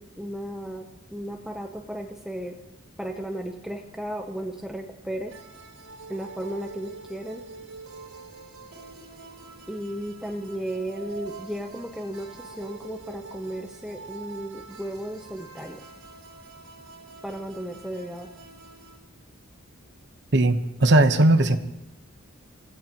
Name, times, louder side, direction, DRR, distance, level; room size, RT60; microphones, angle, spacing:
voice 1, 0.0-2.6 3.0-5.4 6.1-7.4 9.7-15.8 17.2-18.3, right 1 dB, 5° right, 2 dB, 0.8 m, -35 dB
sound 1, 5.3-19.0, right 4 dB, 85° right, 3.5 m, -45 dB
voice 2, 20.3-21.6, right 2 dB, 55° right, 9 dB, 1.1 m, -18 dB
27.5 x 16.5 x 3.0 m, 0.91 s
head